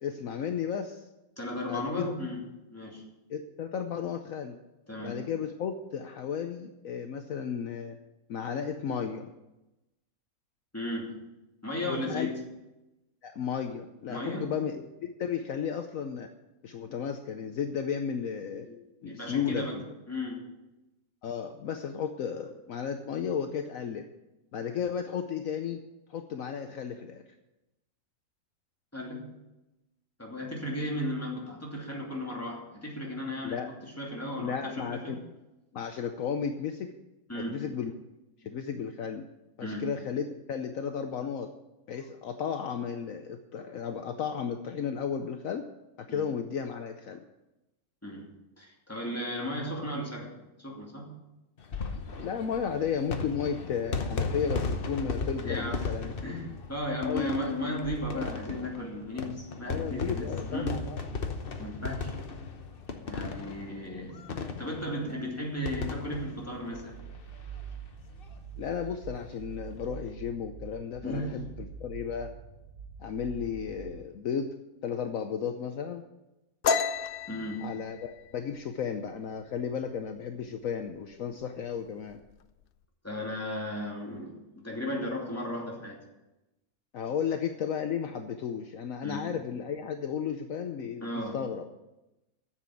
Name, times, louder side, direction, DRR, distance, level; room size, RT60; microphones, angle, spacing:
voice 1, 0.0-1.1 1.7-2.1 3.3-4.6 5.0-8.0 8.3-9.3 11.8-12.3 13.2-16.3 16.6-18.7 19.0-19.9 21.2-24.1 24.5-25.8 26.1-27.2 33.4-33.7 34.4-35.2 35.7-36.9 37.3-37.9 38.4-39.3 39.6-41.5 41.9-45.7 46.0-47.2 52.2-56.1 56.9-57.3 59.7-61.0 68.6-72.3 73.0-74.5 74.8-76.0 77.6-82.2 86.9-91.6, left 7 dB, 65° left, 6 dB, 1.1 m, -34 dB
voice 2, 1.4-2.4 2.7-3.0 4.9-5.2 10.7-11.2 11.6-12.4 14.1-14.5 18.6-18.8 19.1-19.8 20.1-20.4 28.9-29.3 30.2-35.1 37.3-37.6 39.6-39.9 46.1-46.3 48.0-48.3 48.6-51.1 55.4-55.9 56.2-60.8 61.6-62.1 63.1-64.2 64.5-67.0 71.0-71.4 77.3-77.7 83.0-84.4 84.6-86.0 89.0-89.3 91.0-91.4, left 1 dB, 10° left, -2 dB, 2.6 m, -35 dB
sound 1, 51.6-67.6 67.9-68.0 68.2-68.3 69.6-69.9, left 4 dB, 40° left, 1.0 m, -36 dB
sound 2, 66.7-74.0, right 7 dB, 55° right, 1.1 m, -45 dB
sound 3, 76.6-80.1 80.4-80.7 81.1-81.6 81.9-82.7, left 6 dB, 85° left, 0.4 m, -32 dB
10.0 x 7.5 x 9.0 m, 0.97 s
omnidirectional pair, 1.6 m